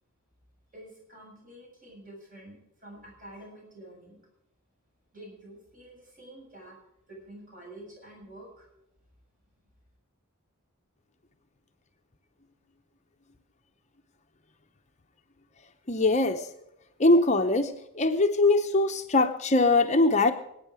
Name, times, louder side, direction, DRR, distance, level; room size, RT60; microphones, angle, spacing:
voice 1, 0.7-4.2 5.1-6.8 7.1-8.7, right 1 dB, 35° right, -1 dB, 7.0 m, -48 dB
voice 2, 15.9-16.5 17.0-20.3, left 2 dB, 30° left, 6 dB, 0.7 m, -22 dB
25.0 x 9.1 x 4.9 m, 0.84 s
head